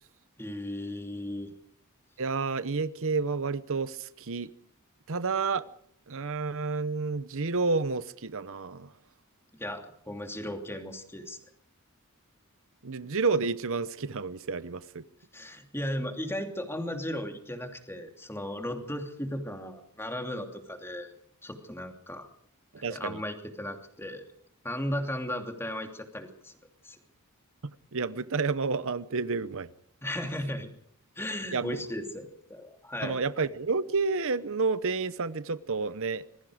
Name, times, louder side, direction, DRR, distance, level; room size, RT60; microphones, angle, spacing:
voice 1, 0.4-1.5 9.6-11.4 15.3-21.1 21.4-22.3 22.8-24.3 24.6-26.5 26.8-27.0 30.0-30.7 31.2-33.2, left 1 dB, 10° left, 2.8 m, -36 dB
voice 2, 2.2-4.5 5.1-5.7 6.1-8.9 12.8-15.0 22.8-23.2 27.6-29.7 31.5-31.8 33.0-36.2, right 4 dB, 65° right, 0.8 m, -30 dB
26.5 x 21.5 x 5.1 m
head